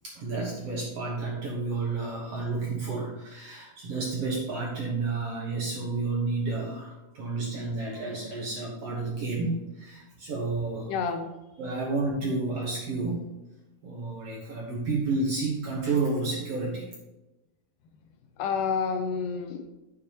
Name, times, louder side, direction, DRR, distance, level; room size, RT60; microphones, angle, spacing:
voice 1, 0.0-10.9 11.6-13.2 13.8-16.9, right 3 dB, 60° right, -3 dB, 1.7 m, -31 dB
voice 2, 10.9-11.3 18.4-19.7, left 6 dB, 80° left, 5 dB, 2.0 m, -29 dB
9.4 x 6.7 x 2.9 m, 1.0 s
omnidirectional pair, 4.0 m